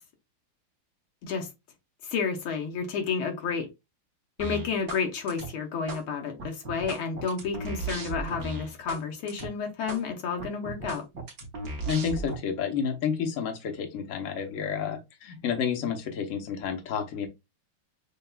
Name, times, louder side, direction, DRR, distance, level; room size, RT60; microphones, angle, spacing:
voice 1, 2.0-3.7 4.4-11.0, left 5 dB, 80° left, 1.7 m, -31 dB
sound 1, 4.4-5.0 5.3-6.0 6.4-9.0 9.3-9.5 9.9-10.0 10.4-12.4, right 3 dB, 50° right, 1.3 m, -36 dB
voice 2, 11.8-17.3, left 7 dB, 55° left, 0.9 m, -30 dB
6.8 x 2.3 x 2.2 m
omnidirectional pair, 2.3 m